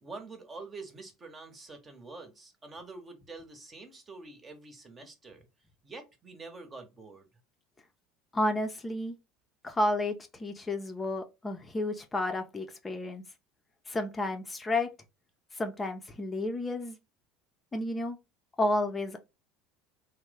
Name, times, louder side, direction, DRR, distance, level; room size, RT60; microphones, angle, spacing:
voice 1, 0.0-5.5 5.8-7.3, right 3 dB, 30° right, 1.0 m, -46 dB
voice 2, 8.3-9.2 9.6-13.2 13.9-14.9 15.5-17.0 17.7-18.2 18.6-19.2, left 1 dB, 20° left, 0.6 m, -31 dB
3.0 x 2.1 x 3.3 m
hypercardioid pair, 80°, 0 cm